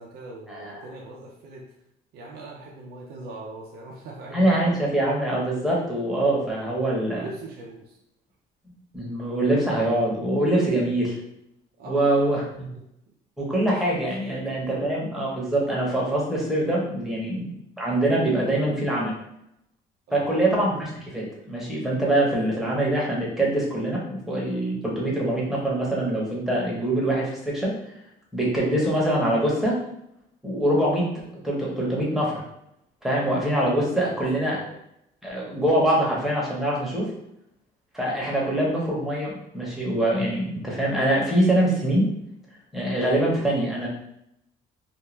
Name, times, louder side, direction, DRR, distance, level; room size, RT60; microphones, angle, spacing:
voice 1, 0.0-1.6 2.1-4.8 7.1-8.0 11.8-12.4 12.7-12.8 13.4-14.6 20.1-20.4 34.0-34.8, right 2 dB, 70° right, -2 dB, 0.6 m, -41 dB
voice 2, 4.3-7.2 8.9-11.1 11.8-12.7 13.4-19.1 20.1-27.7 28.3-29.8 30.4-31.1 31.4-32.4 33.0-34.6 35.2-37.1 37.9-42.1 42.7-43.9, right 1 dB, ahead, -5 dB, 0.9 m, -24 dB
2.5 x 2.2 x 3.1 m, 0.79 s
cardioid pair, 110°, 17 cm